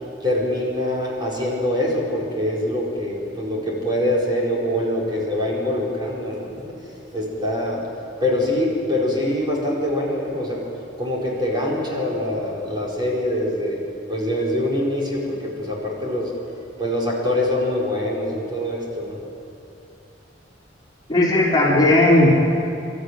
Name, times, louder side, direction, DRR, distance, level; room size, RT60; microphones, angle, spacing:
voice 1, 0.2-6.8 7.1-7.8 8.2-10.7 11.0-13.8 14.1-16.3 16.8-19.2, left 1 dB, 25° right, -4 dB, 4.7 m, -24 dB
voice 2, 21.1-22.3, left 1 dB, 20° left, -5 dB, 3.9 m, -16 dB
25.5 x 13.5 x 9.4 m, 2.8 s
head